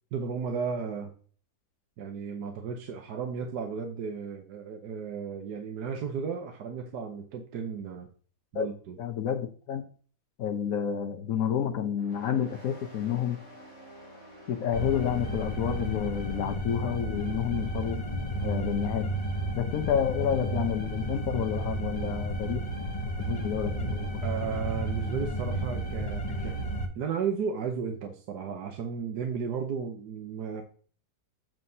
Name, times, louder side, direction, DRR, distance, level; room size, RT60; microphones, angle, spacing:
voice 1, 0.1-1.1 2.0-8.1 8.5-9.0 24.2-26.6 26.9-30.6, right 6 dB, 75° right, 1.5 m, -34 dB
voice 2, 9.0-9.8 10.4-13.4 14.5-18.0 18.4-19.2 19.5-22.6 23.2-24.1, left 9 dB, 65° left, 1.1 m, -29 dB
sound 1, 12.0-17.1, equal, 55° right, 4.4 m, -50 dB
sound 2, 14.7-26.9, right 1 dB, 30° left, 0.8 m, -32 dB
7.6 x 7.5 x 2.7 m
omnidirectional pair, 1.8 m